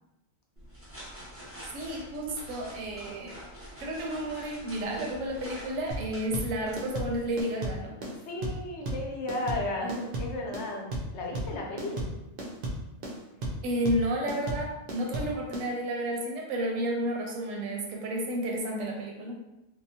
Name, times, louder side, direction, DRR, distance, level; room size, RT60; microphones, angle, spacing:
sound 1, 0.6-7.4, equal, 15° right, 0.7 m, -46 dB
voice 1, 1.7-3.4 3.8-8.0 13.6-19.4, right 1 dB, 80° right, 0 dB, 1.0 m, -31 dB
sound 2, 5.9-15.7, right 1 dB, 55° right, 0.6 m, -34 dB
voice 2, 8.0-12.1, left 2 dB, 65° left, -1 dB, 0.8 m, -34 dB
2.8 x 2.0 x 2.7 m, 0.94 s
omnidirectional pair, 1.4 m